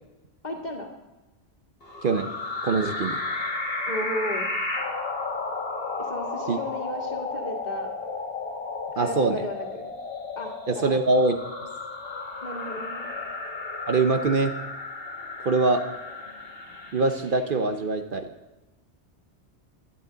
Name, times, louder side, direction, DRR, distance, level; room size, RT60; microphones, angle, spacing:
voice 1, 0.4-0.9 3.8-4.5 6.0-7.9 8.9-9.9 10.4-10.9 12.4-13.2, equal, 40° left, 1 dB, 2.0 m, -34 dB
sound 1, 1.8-17.5, left 3 dB, 55° left, 2.0 m, -33 dB
voice 2, 2.6-3.2 6.5-6.6 9.0-9.4 10.7-11.4 13.9-14.5 15.4-15.8 16.9-18.3, right 3 dB, 50° right, 6 dB, 0.9 m, -23 dB
16.5 x 11.0 x 3.9 m, 1.1 s
omnidirectional pair, 1.2 m